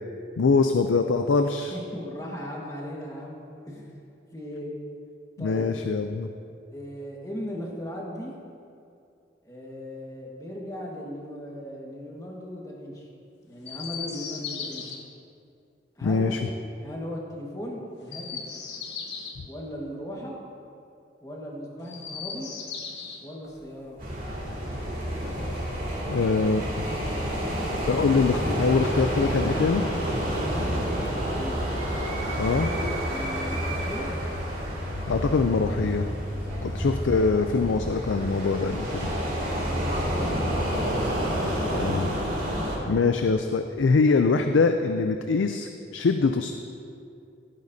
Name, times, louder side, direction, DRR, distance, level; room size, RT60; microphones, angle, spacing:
voice 1, 0.4-1.7 5.4-6.3 16.0-16.3 26.1-26.6 27.9-29.8 32.4-32.7 35.1-36.1 36.6-39.1 41.7-42.1 42.9-46.5, left 4 dB, 85° left, 7 dB, 0.4 m, -23 dB
voice 2, 1.7-3.4 3.7-4.0 4.3-4.7 5.4-5.7 6.7-8.3 9.4-13.1 13.4-15.0 15.9-16.3 16.7-18.5 19.4-20.4 21.2-22.5 23.2-24.0 30.3-31.6 32.6-34.1 36.4-36.6 39.2-41.0 42.8-43.2, equal, 20° left, -2 dB, 1.5 m, -38 dB
Chirp tweet, 13.6-15.0 18.0-19.4 21.8-23.2 24.6-25.7 26.8-27.7, left 6 dB, 65° left, 1.1 m, -38 dB
sound 1, 23.4-23.6 24.8-25.4 27.5-28.5 28.8-34.0, right 3 dB, 70° right, 2.2 m, -42 dB
sound 2, 24.0-42.8, equal, 45° right, 2.6 m, -29 dB
16.0 x 9.4 x 2.7 m, 2.6 s
head